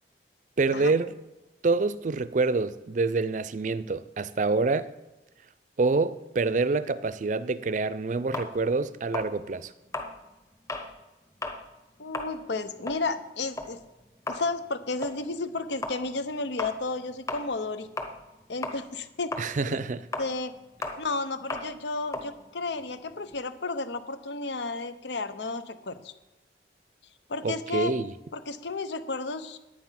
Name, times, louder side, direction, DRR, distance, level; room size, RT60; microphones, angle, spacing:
voice 1, 0.6-1.1 1.6-4.9 5.8-9.7 19.4-20.1 27.4-28.1, right 3 dB, 45° right, 0.5 m, -26 dB
sound 1, 8.3-10.9 11.3-11.6 12.0-18.4 18.6-23.4, left 2 dB, 20° left, 1.1 m, -37 dB
voice 2, 12.0-13.8 14.3-17.9 18.5-19.3 19.6-19.8 20.2-20.5 21.0-26.1 27.3-27.9 28.3-29.6, left 3 dB, 80° left, 0.9 m, -32 dB
10.0 x 9.4 x 5.8 m
head